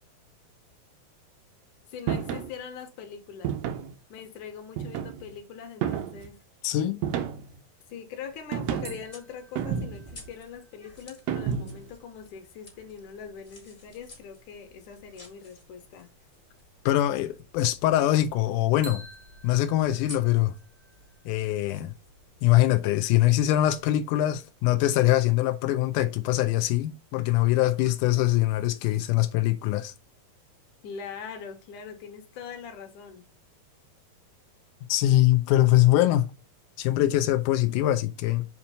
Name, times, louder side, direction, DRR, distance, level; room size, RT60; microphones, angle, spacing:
voice 1, 1.9-3.6 4.1-6.4 7.9-16.1 30.8-33.3, left 7 dB, 65° left, 2.4 m, -42 dB
sound 1, 2.1-2.5 3.4-4.0 4.8-5.3 5.8-6.3 7.0-7.6 8.5-9.0 9.6-10.2 11.3-11.9, right 8 dB, 90° right, 1.5 m, -30 dB
voice 2, 6.6-7.0 16.9-19.0 19.4-20.5 21.3-21.9 22.4-29.9 34.9-36.3 36.8-38.5, left 14 dB, 85° left, 1.8 m, -23 dB
sound 2, 8.2-23.8, left 2 dB, 25° left, 1.0 m, -53 dB
sound 3, 8.8-12.4 18.8-21.6, right 2 dB, 75° right, 0.8 m, -51 dB
7.2 x 2.9 x 5.3 m
omnidirectional pair, 4.2 m